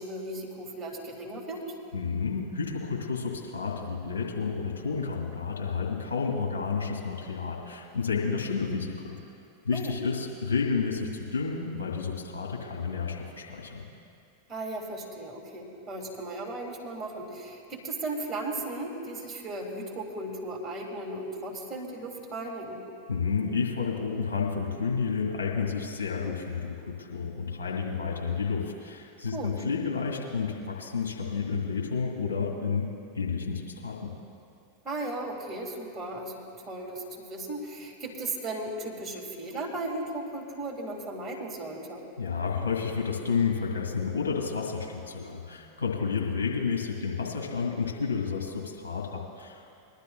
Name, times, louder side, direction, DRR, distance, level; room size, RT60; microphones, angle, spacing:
voice 1, 0.0-1.6 9.7-9.9 14.5-22.8 29.3-29.5 34.8-42.1, right 2 dB, 25° right, -1 dB, 2.4 m, -36 dB
voice 2, 1.9-9.2 9.6-13.9 23.1-32.9 33.1-34.1 42.2-49.6, left 5 dB, 70° left, -2 dB, 2.7 m, -30 dB
23.0 x 12.0 x 2.4 m, 2.4 s
figure-of-eight pair, 90°, 0 cm